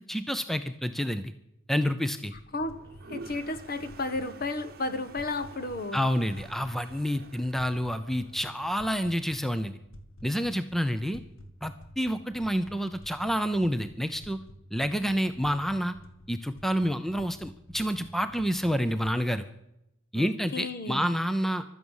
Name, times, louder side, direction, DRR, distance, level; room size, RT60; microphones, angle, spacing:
voice 1, 0.1-1.3 1.7-2.3 5.9-9.8 10.2-11.2 11.6-14.4 14.7-16.0 16.3-19.4 20.1-21.6, equal, ahead, 10 dB, 0.6 m, -28 dB
sound 1, 2.3-19.1, equal, 80° left, 2.1 m, -51 dB
Toilet flush, 2.6-8.7, right 3 dB, 50° right, 1.1 m, -49 dB
voice 2, 3.1-6.0 20.1-21.1, left 2 dB, 45° left, 11 dB, 1.2 m, -33 dB
16.0 x 12.5 x 7.3 m, 0.84 s
head